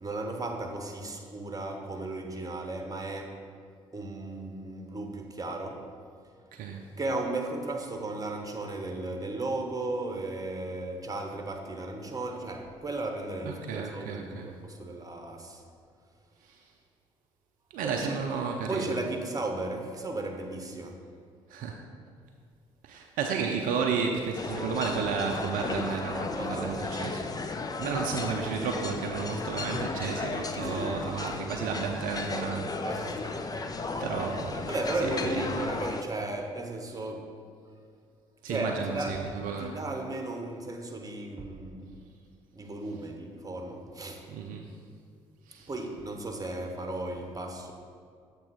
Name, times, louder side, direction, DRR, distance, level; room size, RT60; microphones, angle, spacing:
voice 1, 0.0-3.4 3.9-5.9 7.0-15.6 17.8-18.2 18.7-21.0 26.4-26.8 30.6-31.0 32.8-33.6 34.7-37.3 38.5-39.2 39.6-42.0 42.5-44.3 45.7-47.7, right 2 dB, 20° right, 3 dB, 1.0 m, -35 dB
voice 2, 6.5-6.9 13.5-14.5 16.4-16.6 17.7-18.9 21.5-21.7 22.8-32.8 34.0-34.7 35.0-35.5 38.4-39.8 44.3-44.7 45.5-45.7, right 5 dB, 60° right, 2 dB, 0.5 m, -32 dB
sound 1, 24.4-36.0, left 3 dB, 25° left, 0.5 m, -35 dB
7.2 x 3.0 x 6.0 m, 2.2 s
hypercardioid pair, 50°, 16 cm